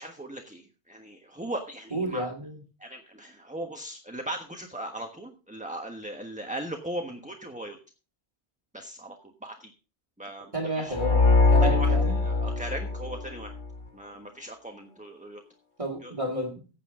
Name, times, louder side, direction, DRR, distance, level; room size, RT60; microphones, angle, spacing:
voice 1, 0.0-2.3 2.8-7.8 8.7-9.1 9.4-9.7 10.2-10.9 11.6-13.5 13.9-15.4 16.0-16.1, right 1 dB, 5° right, 4 dB, 1.2 m, -38 dB
voice 2, 1.9-2.6 10.5-12.1 15.8-16.6, right 1 dB, 30° right, 3 dB, 2.1 m, -31 dB
sound 1, 10.9-13.7, left 3 dB, 50° left, 1.4 m, -22 dB
15.5 x 8.7 x 3.7 m, 0.33 s
omnidirectional pair, 1.1 m